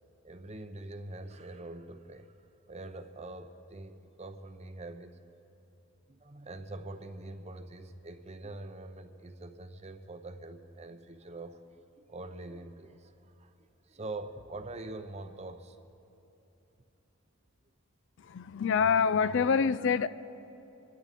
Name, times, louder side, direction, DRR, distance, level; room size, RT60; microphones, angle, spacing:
voice 1, 0.2-2.4 2.7-5.2 6.1-13.5 13.9-15.8, right 2 dB, 30° right, 0.7 m, -44 dB
voice 2, 18.2-20.1, left 6 dB, 55° left, 0.3 m, -26 dB
25.5 x 12.0 x 4.2 m
head